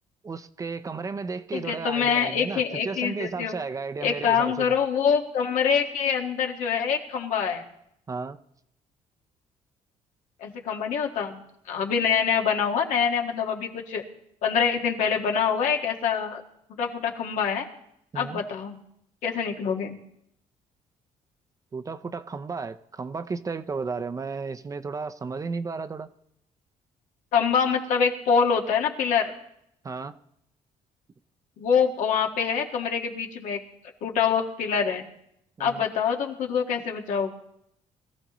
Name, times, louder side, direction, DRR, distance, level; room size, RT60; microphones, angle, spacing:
voice 1, 0.2-4.8 8.1-8.4 18.1-18.4 21.7-26.1 29.8-30.1 35.6-35.8, right 4 dB, 25° right, 0.6 m, -33 dB
voice 2, 1.5-3.5 4.0-7.6 10.4-11.4 11.7-14.0 14.4-16.4 16.7-17.6 18.1-18.8 19.2-19.9 27.3-29.3 31.6-33.6 34.0-35.0 35.6-37.3, left 7 dB, 80° left, 1.7 m, -25 dB
21.0 x 14.0 x 3.0 m
cardioid pair, 120°, 13 cm